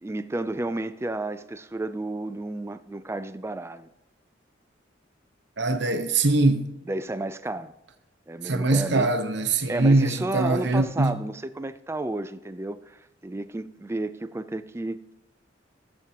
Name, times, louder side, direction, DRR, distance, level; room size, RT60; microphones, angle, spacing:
voice 1, 0.0-3.9 6.9-7.7 8.3-9.2 9.7-15.1, right 2 dB, 15° right, 0.3 m, -32 dB
voice 2, 5.6-6.7 8.4-11.2, right 2 dB, 65° right, 0.9 m, -22 dB
16.0 x 7.4 x 2.9 m
head